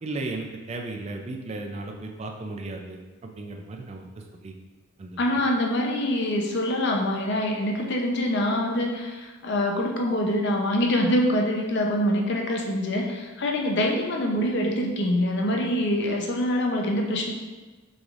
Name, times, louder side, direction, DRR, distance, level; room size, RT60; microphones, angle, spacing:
voice 1, 0.0-4.5 5.0-5.2, right 2 dB, 30° right, 2 dB, 0.3 m, -35 dB
voice 2, 5.2-17.3, left 1 dB, 55° left, 1 dB, 0.6 m, -25 dB
6.0 x 3.3 x 2.4 m, 1.3 s
head